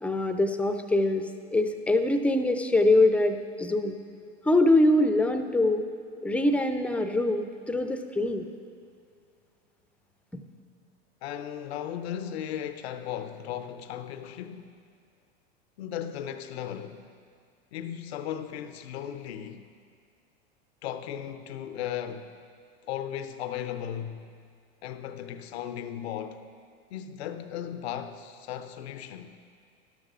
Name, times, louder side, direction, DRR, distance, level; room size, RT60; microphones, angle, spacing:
voice 1, 0.0-4.0 4.4-5.9 6.2-8.5, left 2 dB, 5° left, 0.5 m, -24 dB
voice 2, 11.2-14.8 15.8-17.0 17.7-19.7 20.8-22.3 22.8-24.3 24.8-26.5 26.9-29.4, left 10 dB, 75° left, 0.6 m, -36 dB
13.0 x 12.0 x 2.5 m
hypercardioid pair, 90°, 32 cm